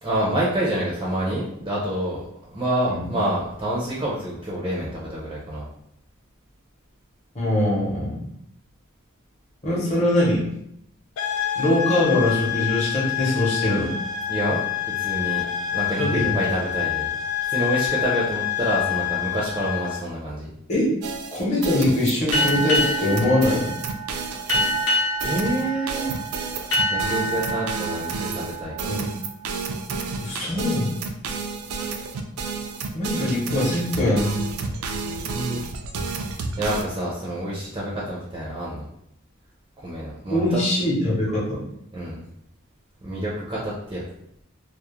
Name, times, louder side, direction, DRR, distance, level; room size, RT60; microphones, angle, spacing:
voice 1, 0.0-2.2 2.5-5.7 14.3-15.4 15.7-17.1 17.5-20.5 25.2-26.2 26.9-29.0 35.1-35.6 36.6-38.9 39.8-40.6 41.9-42.2 43.0-44.0, right 1 dB, 20° right, -6 dB, 0.4 m, -27 dB
voice 2, 7.3-8.2 9.6-10.4 11.5-13.9 16.0-16.3 20.7-20.9 21.3-23.7 28.9-29.1 30.2-30.9 32.9-34.4 40.3-41.6, left 1 dB, 30° left, -6 dB, 0.7 m, -22 dB
sound 1, 11.2-20.1, left 11 dB, 80° left, 0.3 m, -27 dB
sound 2, 21.0-36.8, right 4 dB, 85° right, 0.3 m, -31 dB
sound 3, 22.3-29.6, equal, 65° left, 0.7 m, -27 dB
2.3 x 2.0 x 2.9 m, 0.76 s
head